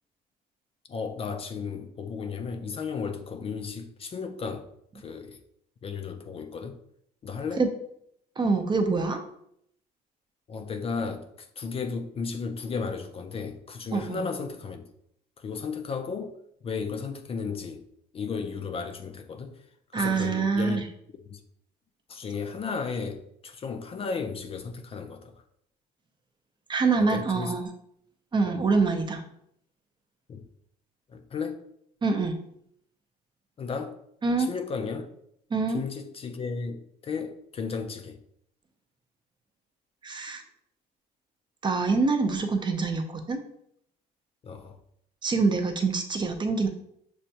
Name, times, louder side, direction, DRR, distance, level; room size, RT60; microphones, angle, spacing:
voice 1, 0.9-4.7 4.9-5.4 5.8-6.8 7.2-7.6 10.5-14.9 15.4-16.4 16.6-17.8 18.1-19.7 19.9-20.9 21.3-21.4 22.1-25.4 27.0-27.5 28.4-28.6 30.3-30.5 31.1-31.6 33.6-34.0 34.4-35.1 35.7-38.2 44.4-44.8, left 5 dB, 35° left, 6 dB, 0.4 m, -34 dB
voice 2, 8.4-9.2 13.9-14.3 19.9-20.8 26.7-27.7 28.3-29.2 32.0-32.4 34.2-34.5 35.5-35.8 40.0-40.4 41.6-43.4 45.2-46.7, right 4 dB, 25° right, 5 dB, 0.5 m, -25 dB
6.2 x 2.2 x 2.8 m, 0.72 s
cardioid pair, 110°, 17 cm